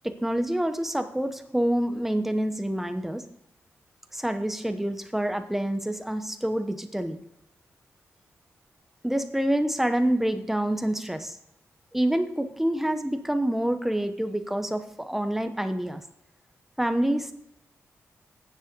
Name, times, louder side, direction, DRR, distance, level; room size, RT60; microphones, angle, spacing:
voice 1, 0.0-3.2 4.1-7.2 9.0-11.4 11.9-16.0 16.8-17.3, right 1 dB, 5° right, 8 dB, 1.0 m, -27 dB
9.6 x 7.5 x 5.3 m, 0.77 s
wide cardioid pair, 115°, 5 cm